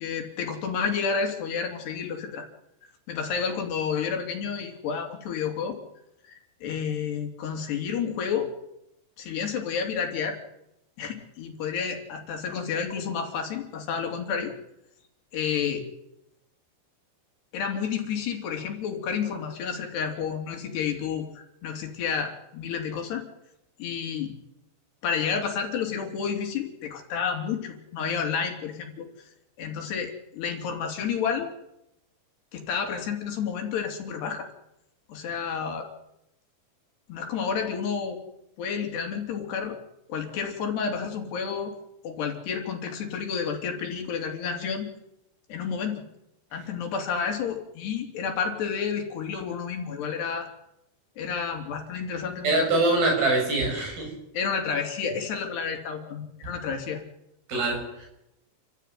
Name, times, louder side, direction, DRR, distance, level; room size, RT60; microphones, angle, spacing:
voice 1, 0.0-2.5 3.1-5.8 6.3-8.5 9.2-10.4 11.0-14.5 15.3-15.8 17.5-23.2 23.8-24.3 25.0-29.1 29.6-31.5 32.5-34.5 35.1-35.9 37.1-38.2 38.6-39.8 40.1-41.7 42.0-44.9 45.5-46.0 46.5-50.5 51.2-52.7 54.3-57.0, left 6 dB, 75° left, 3 dB, 5.1 m, -30 dB
voice 2, 52.4-54.1 57.5-58.1, right 2 dB, 60° right, 2 dB, 9.2 m, -24 dB
28.5 x 15.0 x 9.5 m, 0.84 s
omnidirectional pair, 4.8 m